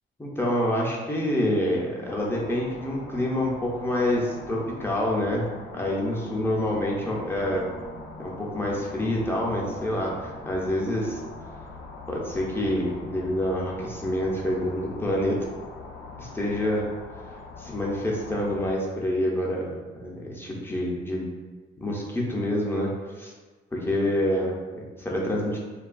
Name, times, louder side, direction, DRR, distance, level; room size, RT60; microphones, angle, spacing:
voice 1, 0.2-5.5 5.7-7.7 8.2-11.2 12.1-15.4 16.2-16.8 17.6-21.3 21.8-22.9 23.2-23.3 23.7-25.6, left 1 dB, 10° left, -3 dB, 0.5 m, -27 dB
sound 1, 2.1-18.8, left 3 dB, 70° left, 0.4 m, -42 dB
2.8 x 2.2 x 2.4 m, 1.3 s
cardioid pair, 90°, 20 cm